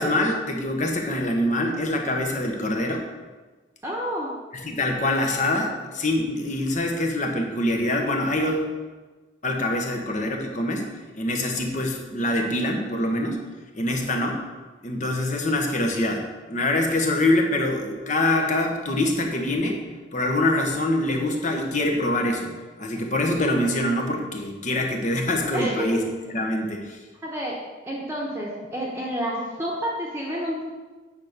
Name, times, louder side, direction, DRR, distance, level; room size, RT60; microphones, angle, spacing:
voice 1, 0.0-3.0 4.6-8.7 9.4-10.9 11.1-13.4 13.7-14.4 14.8-16.2 16.5-19.8 20.1-22.5 22.8-26.0 26.3-27.0, left 1 dB, 40° left, 2 dB, 1.1 m, -24 dB
voice 2, 3.8-4.3 25.5-25.9 27.2-27.6 27.8-30.6, equal, 15° right, -3 dB, 1.1 m, -29 dB
8.9 x 4.4 x 6.7 m, 1.3 s
head